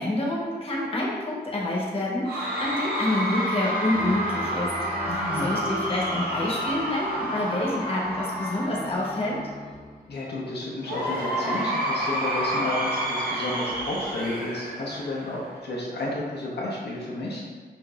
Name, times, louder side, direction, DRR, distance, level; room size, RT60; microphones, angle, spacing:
voice 1, 0.0-4.7 5.1-9.4, left 1 dB, 35° left, -5 dB, 0.9 m, -28 dB
Cheering / Crowd, 2.2-9.6 10.8-15.6, equal, 70° right, 1.0 m, -29 dB
sound 1, 3.9-10.5, left 1 dB, 5° right, 0.8 m, -40 dB
voice 2, 5.0-5.6 10.1-17.4, left 2 dB, 80° left, -5 dB, 0.8 m, -32 dB
5.8 x 2.6 x 2.3 m, 1.5 s
wide cardioid pair, 95°, 17 cm